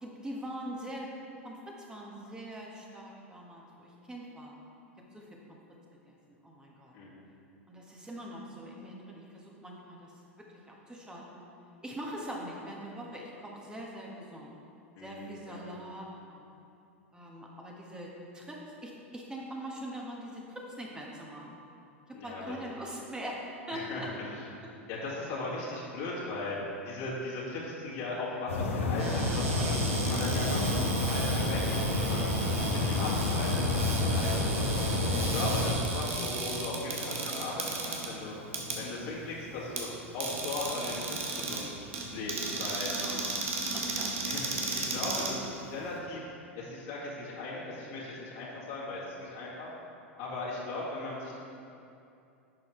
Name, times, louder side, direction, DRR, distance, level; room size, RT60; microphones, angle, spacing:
voice 1, 0.0-1.1 1.4-4.5 5.1-5.6 6.0-6.9 7.7-10.1 10.7-11.4 11.8-14.5 15.0-16.5 17.1-21.5 22.2-24.1 43.0-43.4 43.7-44.1, equal, 10° right, -2 dB, 1.5 m, -42 dB
voice 2, 15.0-15.6 22.1-22.5 23.7-24.0 24.9-26.6 26.9-32.3 32.6-34.6 35.2-38.3 38.8-39.9 40.1-41.8 42.1-42.9 43.9-44.0 44.2-46.2 46.6-49.7 50.2-51.3, left 2 dB, 55° left, -7 dB, 2.2 m, -38 dB
sound 1, 28.5-35.7, left 2 dB, 75° left, 1.1 m, -29 dB
Cupboard open or close, 28.9-46.0, right 3 dB, 75° right, 1.4 m, -35 dB
10.5 x 7.0 x 3.3 m, 2.6 s
hypercardioid pair, 90°, 7 cm